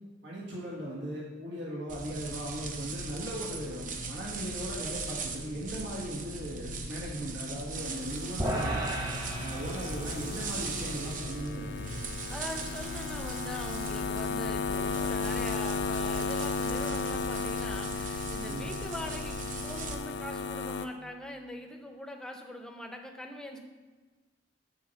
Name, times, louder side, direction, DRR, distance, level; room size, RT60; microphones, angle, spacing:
voice 1, 0.2-8.8 9.4-12.0 18.5-18.7, equal, 80° right, -5 dB, 1.5 m, -38 dB
sound 1, 1.9-19.9, right 3 dB, 45° right, 0.7 m, -40 dB
sound 2, 7.8-20.9, left 4 dB, 75° left, 0.5 m, -35 dB
sound 3, 8.4-14.8, right 1 dB, 20° right, 1.0 m, -38 dB
voice 2, 12.3-23.6, equal, 5° left, 3 dB, 0.6 m, -42 dB
7.1 x 4.4 x 6.3 m, 1.3 s
head